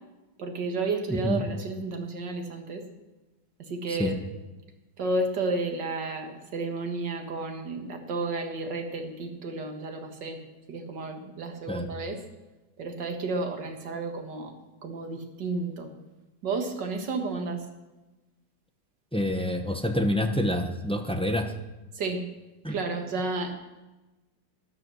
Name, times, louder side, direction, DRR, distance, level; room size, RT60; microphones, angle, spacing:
voice 1, 0.4-2.8 3.6-4.2 5.0-10.4 10.7-12.2 12.8-14.5 14.8-15.9 16.4-17.6 21.9-22.2 22.7-23.5, right 3 dB, 75° right, 4 dB, 2.3 m, -32 dB
voice 2, 1.1-1.4 3.9-4.2 11.7-11.9 19.1-21.5 22.6-22.8, left 1 dB, 5° left, 5 dB, 0.5 m, -27 dB
13.0 x 11.0 x 6.2 m, 1.1 s
omnidirectional pair, 1.9 m